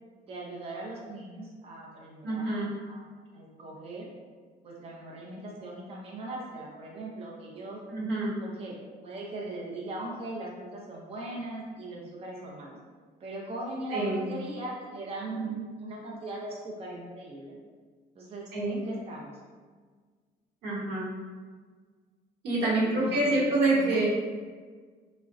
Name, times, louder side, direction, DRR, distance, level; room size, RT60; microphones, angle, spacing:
voice 1, 0.2-4.1 4.6-7.8 8.4-8.7 9.0-12.8 13.2-17.6 18.1-19.4 22.8-24.0, right 2 dB, 35° right, -4 dB, 0.6 m, -39 dB
voice 2, 2.2-2.7 7.9-8.3 13.9-14.2 18.5-18.8 20.6-21.1 22.4-24.1, right 2 dB, 85° right, -5 dB, 0.9 m, -26 dB
3.6 x 2.1 x 2.5 m, 1.5 s
cardioid pair, 110°, 17 cm